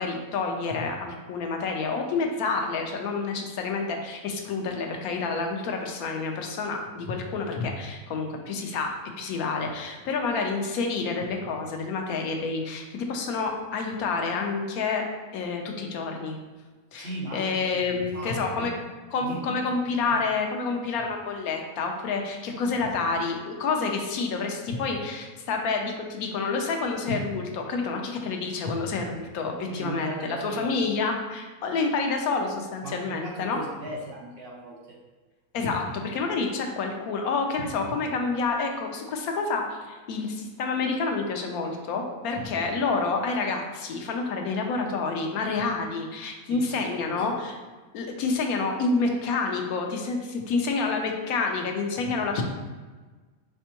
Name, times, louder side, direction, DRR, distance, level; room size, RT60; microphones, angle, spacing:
voice 1, 0.0-15.1 15.3-16.4 16.9-18.7 19.1-33.6 35.5-47.5 47.9-52.4, left 4 dB, 90° left, 3 dB, 1.1 m, -28 dB
voice 2, 16.9-18.7 19.2-19.5 20.0-20.2 29.7-30.8 32.8-35.0 46.5-47.4, right 2 dB, 45° right, -4 dB, 0.9 m, -38 dB
5.2 x 3.3 x 2.9 m, 1.3 s
omnidirectional pair, 1.5 m